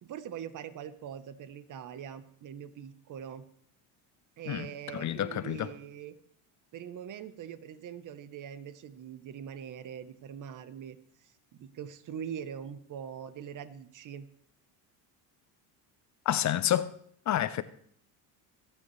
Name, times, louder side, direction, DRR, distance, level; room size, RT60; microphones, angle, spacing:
voice 1, 0.0-3.5 4.4-6.2 6.7-11.0 11.5-14.3, right 8 dB, 45° right, 1.0 m, -42 dB
voice 2, 4.9-5.7 16.3-16.9 17.3-17.6, left 11 dB, 40° left, 0.7 m, -29 dB
25.0 x 8.9 x 3.2 m
cardioid pair, 115°, 42 cm